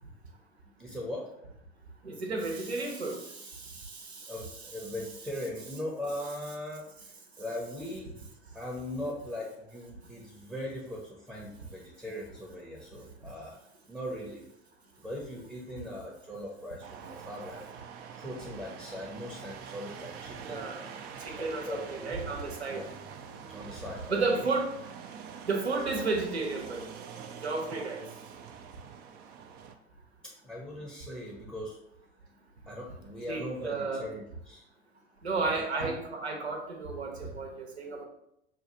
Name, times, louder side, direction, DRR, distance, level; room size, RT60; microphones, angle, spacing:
voice 1, 0.8-1.3 4.3-8.1 8.5-13.6 13.9-14.5 15.0-17.6 18.2-20.7 21.4-22.1 22.7-22.9 23.5-24.5 30.4-31.8 32.7-34.6 35.5-35.6, left 1 dB, 5° right, -2 dB, 0.7 m, -40 dB
voice 2, 2.0-4.3 20.4-20.8 21.2-22.8 24.1-24.7 25.5-26.8 27.4-28.0 33.3-34.1 35.2-38.0, right 3 dB, 85° right, 2 dB, 0.8 m, -32 dB
sound 1, 16.8-29.8, right 7 dB, 30° right, 0.4 m, -45 dB
6.2 x 2.3 x 2.9 m, 0.79 s
figure-of-eight pair, 80°, 32 cm